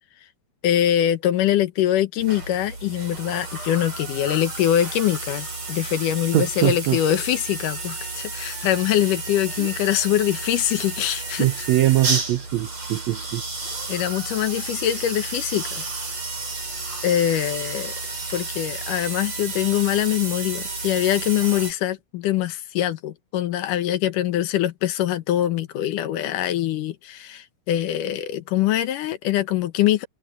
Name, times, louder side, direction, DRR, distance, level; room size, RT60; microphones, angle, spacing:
voice 1, 0.6-11.7 13.9-15.8 17.0-17.9 18.3-30.1, left 12 dB, 75° left, 2.6 m, -23 dB
sound 1, 2.2-21.7, right 3 dB, 50° right, 9.2 m, -32 dB
voice 2, 6.3-7.0 9.6-9.7 11.4-13.4, right 15 dB, 85° right, 1.5 m, -22 dB
omnidirectional pair, 3.8 m